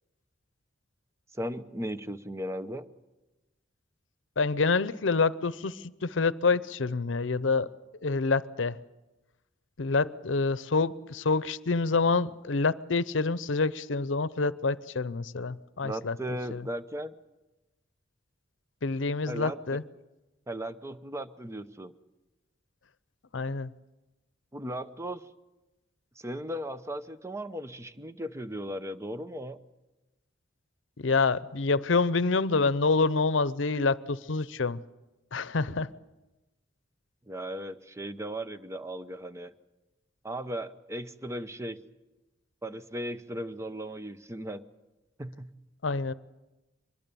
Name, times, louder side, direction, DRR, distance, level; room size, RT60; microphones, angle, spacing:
voice 1, 1.3-2.9 15.8-17.1 19.3-19.8 20.5-21.9 24.5-25.2 26.2-29.6 37.3-39.5 40.2-41.8 42.6-44.6 45.2-45.5, right 1 dB, 15° right, 0.8 m, -37 dB
voice 2, 4.4-7.7 8.0-8.8 9.8-16.7 18.8-19.8 23.3-23.7 31.0-34.8 35.3-35.9 45.8-46.1, left 4 dB, 80° left, 0.7 m, -27 dB
24.0 x 21.0 x 6.9 m
head